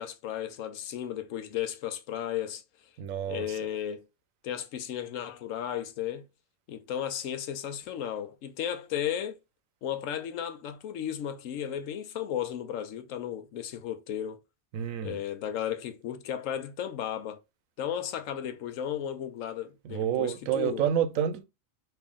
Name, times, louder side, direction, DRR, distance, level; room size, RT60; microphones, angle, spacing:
voice 1, 0.0-2.6 3.3-4.0 4.4-6.3 6.7-9.4 9.8-14.4 15.0-17.4 17.8-20.8, left 10 dB, 75° left, 1.0 m, -34 dB
voice 2, 3.0-3.6 14.7-15.2 19.8-21.4, right 9 dB, 80° right, 1.0 m, -29 dB
3.4 x 2.6 x 3.5 m
omnidirectional pair, 1.4 m